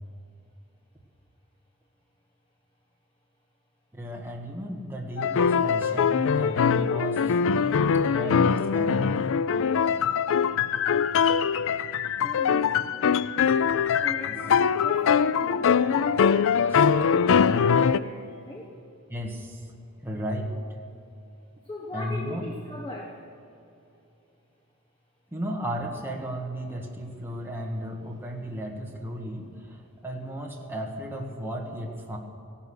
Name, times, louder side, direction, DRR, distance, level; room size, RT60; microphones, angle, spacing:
voice 1, 3.9-9.2 14.3-14.4 16.7-16.9 19.1-19.7 20.0-20.6 21.9-22.4 25.3-32.2, equal, 10° right, 0 dB, 1.6 m, -34 dB
sound 1, 5.2-18.0, left 6 dB, 60° left, 0.4 m, -22 dB
voice 2, 12.2-13.2 13.5-18.8 21.6-23.4, left 1 dB, 20° left, -1 dB, 1.3 m, -40 dB
16.0 x 11.5 x 6.4 m, 2.8 s
head